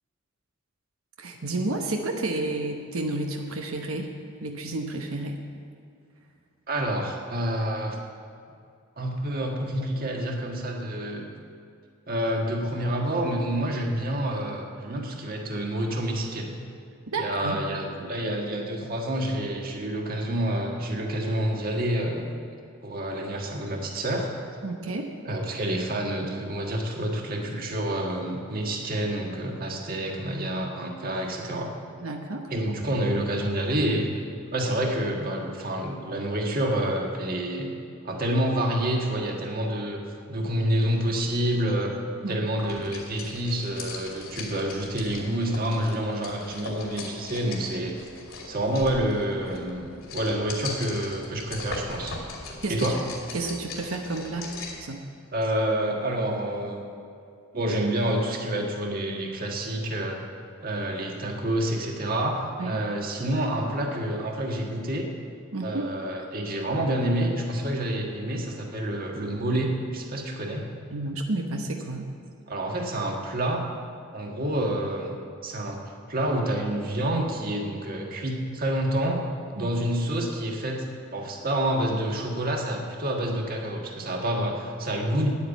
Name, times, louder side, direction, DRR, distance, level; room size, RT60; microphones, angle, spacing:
voice 1, 1.2-4.1 4.4-5.4 17.1-17.6 24.6-25.1 32.0-32.4 42.2-42.5 52.6-52.9 53.3-54.5 54.8-55.0 62.6-62.8 65.5-65.8 70.9-72.1 79.6-79.7, right 2 dB, 90° right, 3 dB, 1.0 m, -31 dB
voice 2, 6.7-8.0 9.0-11.3 12.1-16.6 17.2-22.3 22.8-24.3 25.2-31.7 32.5-34.1 34.5-37.7 38.0-40.0 40.3-42.0 42.3-48.0 48.5-52.2 52.7-53.0 55.3-56.9 57.5-60.2 60.6-65.1 65.6-70.6 72.5-73.6 74.1-75.2 75.4-75.8 76.1-79.2 79.5-80.8 81.1-85.3, right 1 dB, 45° right, 1 dB, 1.5 m, -28 dB
sound 1, 42.6-54.9, left 3 dB, 85° left, 2.7 m, -39 dB
9.6 x 9.4 x 8.2 m, 2.4 s
head